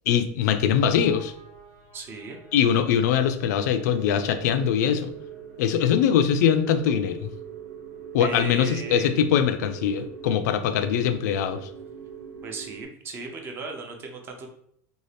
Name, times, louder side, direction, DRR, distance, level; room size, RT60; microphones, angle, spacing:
voice 1, 0.1-1.3 2.5-5.1 5.6-7.3 8.1-11.7, left 8 dB, 85° left, 9 dB, 0.4 m, -22 dB
sound 1, 0.8-12.9, right 8 dB, 65° right, 1.1 m, -43 dB
voice 2, 1.9-2.4 8.2-9.2 12.4-14.5, right 3 dB, 25° right, 3 dB, 0.5 m, -36 dB
2.6 x 2.4 x 3.2 m, 0.68 s
supercardioid pair, 160°, 9 cm